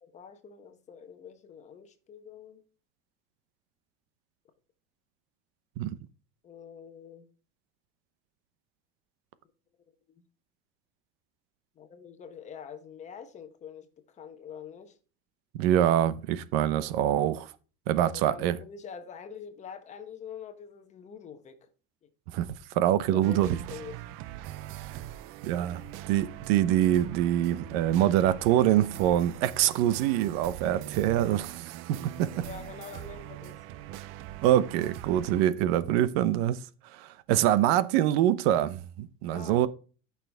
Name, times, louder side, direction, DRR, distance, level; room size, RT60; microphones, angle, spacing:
voice 1, 0.0-2.6 6.4-7.3 10.1-10.2 11.7-15.0 18.0-21.7 22.0-22.1 23.0-24.0 32.2-33.6 39.3-39.7, left 7 dB, 25° left, 1.0 m, -45 dB
voice 2, 15.6-17.5 17.9-18.6 22.3-22.5 22.8-23.6 25.4-25.8 26.1-32.3 34.4-36.6 37.0-39.7, right 12 dB, 85° right, 0.9 m, -25 dB
sound 1, 23.2-35.4, right 13 dB, 45° right, 0.5 m, -42 dB
13.5 x 5.9 x 3.4 m
cardioid pair, 180°, 29 cm